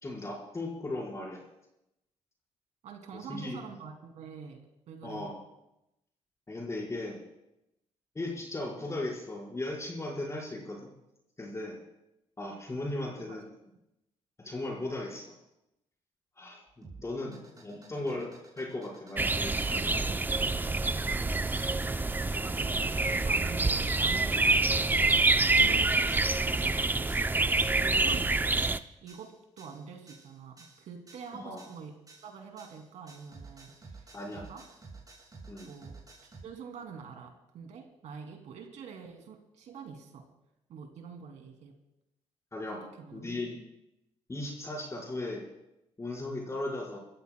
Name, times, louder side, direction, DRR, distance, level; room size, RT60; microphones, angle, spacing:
voice 1, 0.0-1.4 3.1-3.6 5.0-5.4 6.5-7.2 8.1-10.9 11.4-11.8 12.4-13.4 14.4-15.3 16.4-20.1 25.6-25.8 31.3-31.6 34.1-34.5 35.5-35.7 42.5-42.8 43.1-43.6 44.3-45.4 46.0-47.0, left 2 dB, 25° left, -2 dB, 4.8 m, -37 dB
voice 2, 2.8-4.6 4.9-5.3 13.2-13.4 17.1-17.5 22.4-26.8 27.3-27.5 27.8-28.4 29.0-31.9 32.2-34.6 35.6-36.0 36.4-40.3 40.7-41.7 42.7-43.3, right 6 dB, 75° right, 3 dB, 2.7 m, -46 dB
sound 1, 16.7-36.4, right 3 dB, 30° right, 6.8 m, -54 dB
sound 2, 19.2-28.8, right 3 dB, 15° right, 0.5 m, -27 dB
28.5 x 14.5 x 2.3 m, 0.88 s
cardioid pair, 75°, 12 cm